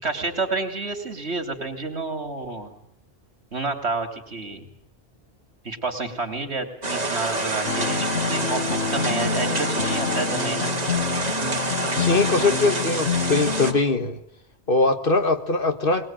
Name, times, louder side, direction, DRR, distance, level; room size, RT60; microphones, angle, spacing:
voice 1, 0.0-2.7 3.5-4.7 5.7-10.7, right 3 dB, 80° right, 6 dB, 3.6 m, -29 dB
sound 1, 6.8-13.7, right 2 dB, 40° right, 1.9 m, -27 dB
sound 2, 7.6-13.8, left 6 dB, 85° left, 1.9 m, -27 dB
voice 2, 11.9-14.2 14.7-16.1, left 3 dB, 55° left, 8 dB, 1.9 m, -21 dB
22.5 x 21.0 x 9.1 m, 0.72 s
omnidirectional pair, 1.1 m